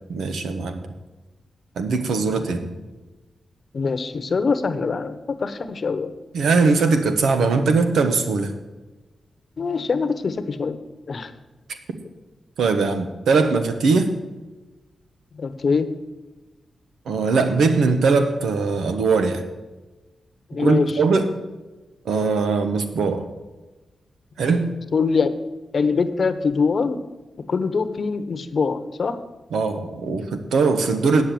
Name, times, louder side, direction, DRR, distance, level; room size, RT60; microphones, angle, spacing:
voice 1, 0.1-0.8 1.8-2.7 6.3-8.5 12.6-14.1 17.1-19.4 20.6-21.3 22.0-23.3 24.4-24.7 29.5-31.2, right 4 dB, 90° right, 8 dB, 1.1 m, -20 dB
voice 2, 2.1-2.6 3.7-6.1 9.6-10.8 11.1-11.3 15.3-15.9 20.5-21.0 24.9-25.3 25.7-27.0 27.5-29.2, left 5 dB, 55° left, 11 dB, 0.9 m, -23 dB
8.6 x 7.6 x 8.5 m, 1.1 s
cardioid pair, 65°, 0 cm